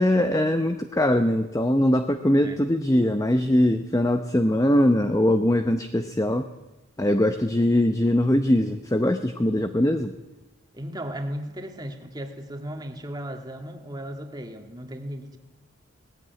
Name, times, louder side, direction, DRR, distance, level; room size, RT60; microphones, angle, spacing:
voice 1, 0.0-6.5 7.0-10.1, left 1 dB, 15° left, 8 dB, 0.7 m, -21 dB
voice 2, 10.7-15.4, equal, 20° right, 5 dB, 1.8 m, -36 dB
18.5 x 15.5 x 9.2 m, 1.1 s
head